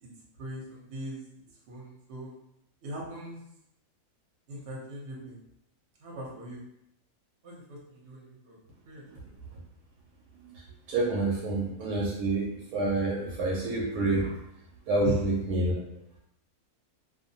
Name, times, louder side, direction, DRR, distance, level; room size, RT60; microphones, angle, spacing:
voice 1, 0.3-1.2 1.5-2.3 2.8-3.4 4.5-5.4 6.0-6.6 7.4-8.6 8.9-9.3 15.0-15.3, equal, 55° right, -4 dB, 0.9 m, -40 dB
voice 2, 10.9-14.4 14.9-15.7, right 2 dB, 80° right, -4 dB, 1.1 m, -28 dB
2.6 x 2.0 x 2.7 m, 0.78 s
omnidirectional pair, 1.6 m